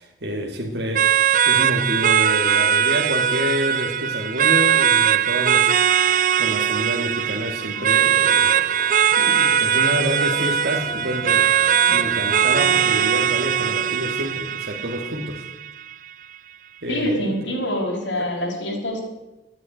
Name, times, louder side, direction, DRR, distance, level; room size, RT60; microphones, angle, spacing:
voice 1, 0.0-5.7 6.4-8.9 9.2-11.5 11.9-15.5 16.8-17.4 18.2-18.5, equal, 60° right, 0 dB, 1.6 m, -28 dB
sound 1, 1.0-15.9, right 9 dB, 45° right, 0.5 m, -20 dB
sound 2, 7.7-14.3, left 1 dB, 25° left, 2.2 m, -39 dB
voice 2, 16.9-19.0, equal, 85° left, -1 dB, 5.2 m, -25 dB
13.0 x 9.6 x 9.9 m, 1.0 s
head